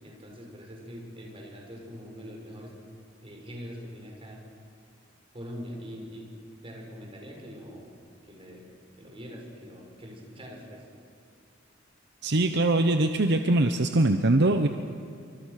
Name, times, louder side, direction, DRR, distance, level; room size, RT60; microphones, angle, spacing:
voice 1, 0.0-2.8 3.2-4.4 5.3-6.3 6.6-7.9 8.2-8.7 9.0-10.8, equal, 30° right, 0 dB, 5.7 m, -43 dB
voice 2, 12.2-14.7, right 2 dB, 60° right, 7 dB, 1.0 m, -22 dB
28.0 x 25.0 x 6.7 m, 2.3 s
head